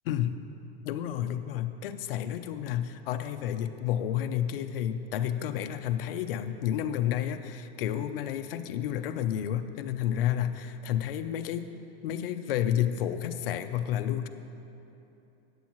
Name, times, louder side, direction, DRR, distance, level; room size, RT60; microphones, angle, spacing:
voice 1, 0.1-0.4 0.8-11.7 12.0-14.3, left 10 dB, 60° left, 9 dB, 0.5 m, -30 dB
13.0 x 9.2 x 3.0 m, 2.9 s
supercardioid pair, 180°, 32 cm